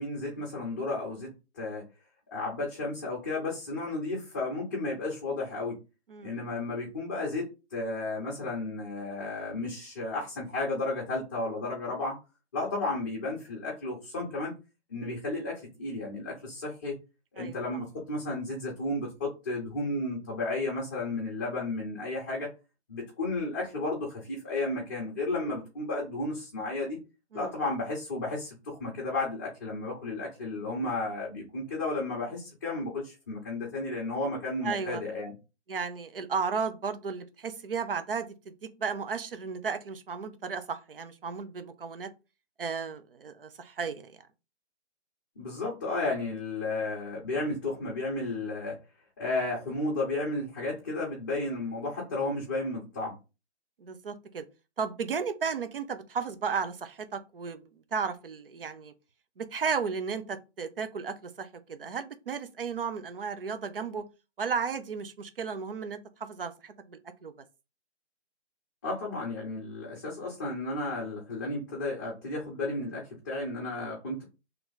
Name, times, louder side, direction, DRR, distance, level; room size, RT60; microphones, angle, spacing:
voice 1, 0.0-1.9 2.3-5.8 6.2-12.2 12.5-14.5 14.9-17.0 17.3-22.5 22.9-27.0 27.3-35.3 45.4-48.8 49.2-53.2 68.8-74.2, left 2 dB, 15° left, 0.9 m, -33 dB
voice 2, 6.1-6.5 17.4-17.6 27.3-27.6 34.6-35.0 35.7-42.1 42.6-44.2 53.8-54.4 54.8-58.9 59.4-64.0 64.4-67.3, right 5 dB, 50° right, 0.8 m, -34 dB
3.4 x 3.1 x 3.9 m
hypercardioid pair, 165°, 35 cm